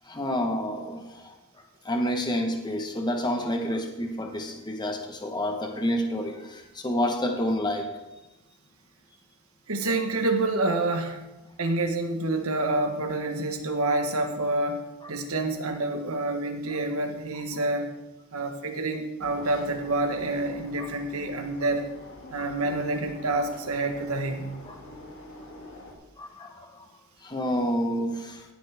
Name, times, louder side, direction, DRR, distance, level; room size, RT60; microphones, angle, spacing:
voice 1, 0.0-1.3 1.8-7.9 20.8-20.9 22.4-22.5 24.6-24.8 26.2-26.9 27.2-28.4, equal, 20° left, 3 dB, 1.3 m, -29 dB
voice 2, 9.7-11.2 11.6-17.9 18.3-21.8 22.3-24.5, right 2 dB, 80° right, 4 dB, 1.4 m, -28 dB
sound 1, 19.2-25.9, left 1 dB, 65° left, 2.3 m, -45 dB
16.5 x 9.3 x 3.6 m, 1.0 s
head